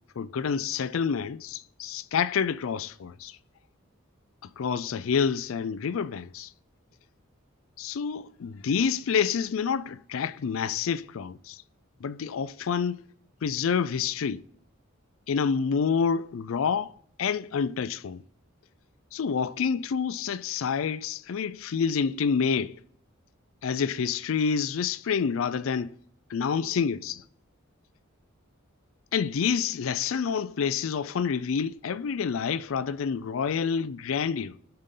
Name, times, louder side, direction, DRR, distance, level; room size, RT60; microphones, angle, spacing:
voice 1, 0.2-3.4 4.4-6.5 7.8-11.6 12.0-13.0 13.4-14.4 15.3-16.9 17.2-18.2 19.1-22.8 23.6-25.9 26.3-27.2 29.1-34.5, left 6 dB, 70° left, 0.4 m, -28 dB
19.0 x 6.7 x 3.8 m
head